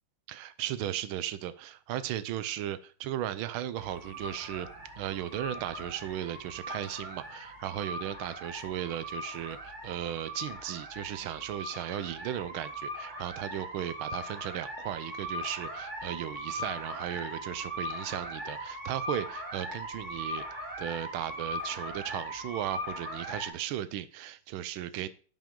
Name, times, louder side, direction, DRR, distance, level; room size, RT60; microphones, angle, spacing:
voice 1, 0.3-4.7 5.0-20.4 20.8-25.1, right 12 dB, 80° right, 1.4 m, -36 dB
sound 1, 3.8-23.5, equal, 25° right, 1.8 m, -40 dB
10.0 x 5.4 x 3.7 m
omnidirectional pair, 2.3 m